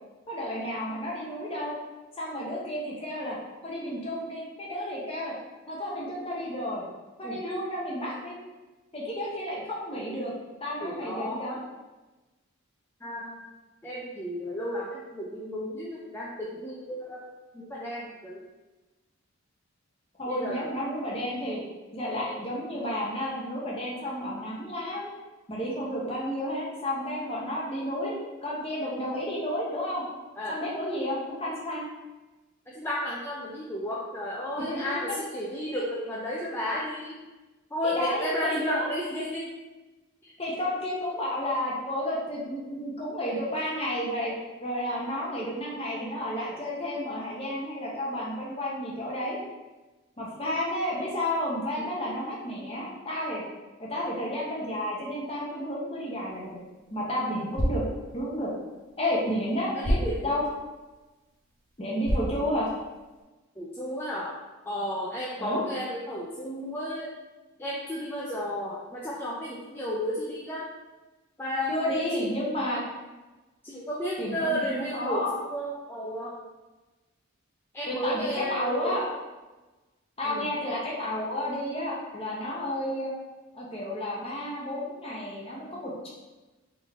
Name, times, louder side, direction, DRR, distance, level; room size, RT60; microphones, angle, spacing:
voice 1, 0.3-1.7 2.2-3.4 3.6-5.3 5.7-6.8 7.2-8.3 8.9-10.3 10.6-11.6 20.2-21.6 21.9-25.1 25.5-28.1 28.4-30.0 30.5-31.9 34.7-34.9 37.8-38.9 40.4-44.3 44.6-49.4 50.2-53.4 53.8-56.6 56.9-57.8 58.1-58.5 59.0-60.0 60.2-60.4 61.8-62.7 65.4-65.6 71.7-72.8 74.2-75.3 77.8-79.1 80.2-83.1 83.5-86.1, left 1 dB, 25° left, -5 dB, 1.0 m, -31 dB
voice 2, 10.8-11.4 13.0-13.4 13.8-17.3 17.5-18.4 20.3-20.7 30.4-30.6 32.7-37.2 37.7-39.5 51.8-51.9 59.8-60.4 63.6-64.3 64.6-67.1 67.6-70.7 71.4-72.2 73.6-76.3 77.7-79.0 80.2-80.5, equal, 10° left, -6 dB, 0.4 m, -33 dB
sound 1, 56.3-63.2, equal, 40° right, 1.2 m, -34 dB
3.8 x 3.6 x 3.6 m, 1.2 s
head